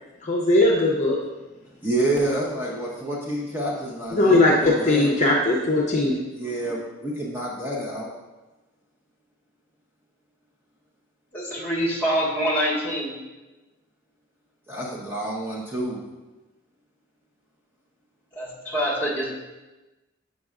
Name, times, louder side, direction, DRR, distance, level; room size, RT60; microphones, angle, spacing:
voice 1, 0.3-1.2 4.1-6.1, left 2 dB, 40° left, -1 dB, 0.6 m, -19 dB
voice 2, 1.8-5.2 6.3-8.1 14.7-16.0, right 1 dB, 10° right, -5 dB, 0.7 m, -28 dB
voice 3, 11.3-13.1 18.3-19.3, equal, 10° left, -5 dB, 1.5 m, -25 dB
7.4 x 5.3 x 2.4 m, 1.1 s
head